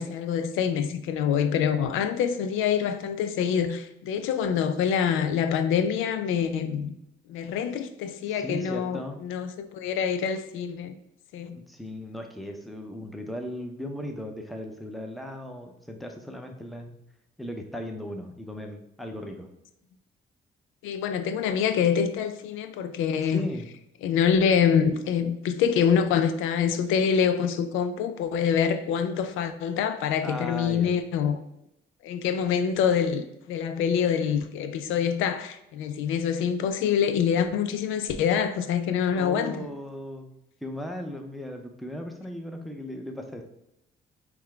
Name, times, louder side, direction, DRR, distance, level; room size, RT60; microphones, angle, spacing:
voice 1, 0.0-7.0 7.3-10.9 11.3-11.6 20.8-23.5 24.0-31.4 32.0-39.7, left 7 dB, 90° left, 0.4 m, -25 dB
voice 2, 8.3-9.2 11.5-16.9 17.4-19.5 23.3-23.7 30.2-31.0 39.1-40.3 40.6-43.4, left 1 dB, ahead, 0.7 m, -37 dB
5.7 x 2.2 x 3.3 m
cardioid pair, 90°, 20 cm